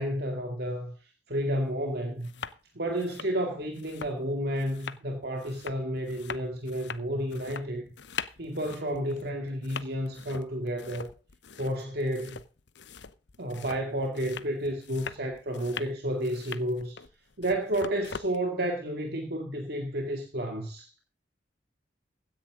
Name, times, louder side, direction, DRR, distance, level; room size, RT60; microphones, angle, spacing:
voice 1, 0.0-2.3 2.7-7.9 8.4-11.1 11.6-12.4 13.4-17.0 17.4-20.9, right 1 dB, 60° right, 2.3 m, -31 dB
sound 1, 1.6-1.7 2.1-2.6 2.9-18.4, left 6 dB, 70° left, 0.9 m, -42 dB
16.0 x 10.5 x 3.8 m
head